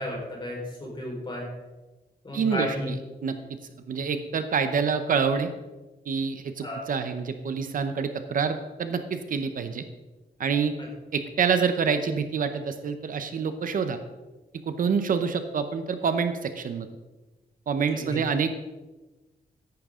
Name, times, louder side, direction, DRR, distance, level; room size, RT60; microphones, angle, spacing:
voice 1, 0.0-1.5 2.2-2.9 6.6-6.8 17.9-18.2, equal, 30° left, -2 dB, 4.4 m, -33 dB
voice 2, 2.3-3.0 3.2-3.6 3.9-5.5 6.1-9.8 10.4-10.7 11.1-14.0 14.7-16.9 17.7-18.5, right 6 dB, 55° right, 9 dB, 0.8 m, -27 dB
14.0 x 10.5 x 3.7 m, 1.1 s
wide cardioid pair, 170°, 17 cm